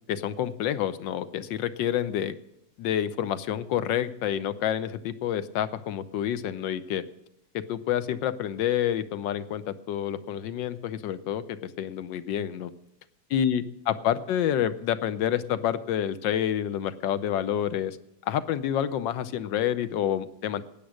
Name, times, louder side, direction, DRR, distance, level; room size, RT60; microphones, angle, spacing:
voice 1, 0.1-2.3 2.8-7.0 7.5-12.7 13.3-18.0 18.3-20.6, left 10 dB, 75° left, 13 dB, 1.4 m, -28 dB
16.0 x 9.4 x 6.4 m, 0.81 s
omnidirectional pair, 2.1 m